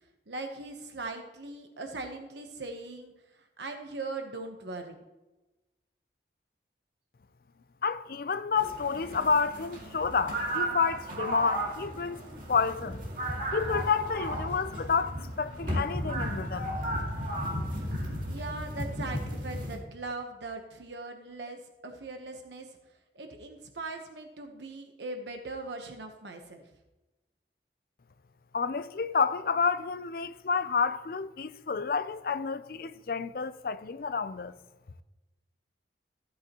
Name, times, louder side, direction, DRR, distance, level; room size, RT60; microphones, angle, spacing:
voice 1, 0.3-4.9 18.3-22.8 23.1-26.7, right 3 dB, 75° right, 1.1 m, -40 dB
voice 2, 7.8-12.2 12.5-13.0 13.5-16.7 28.5-34.5, left 5 dB, 55° left, 0.5 m, -29 dB
sound 1, 8.6-19.8, right 1 dB, 50° right, 2.3 m, -34 dB
14.5 x 8.4 x 3.0 m
head